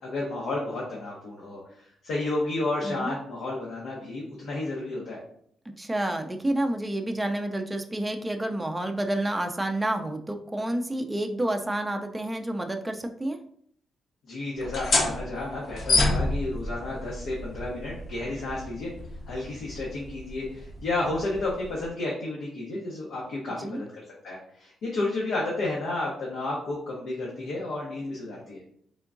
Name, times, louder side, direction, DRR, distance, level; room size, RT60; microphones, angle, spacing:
voice 1, 0.0-1.8 2.0-5.2 14.2-18.9 19.3-28.6, left 2 dB, 90° left, -4 dB, 0.9 m, -32 dB
voice 2, 5.8-13.4 23.6-23.8, right 1 dB, 10° right, 5 dB, 0.4 m, -29 dB
sound 1, 14.6-21.9, left 2 dB, 55° left, 0.7 m, -30 dB
3.6 x 3.5 x 2.5 m, 0.64 s
cardioid pair, 125°, 0 cm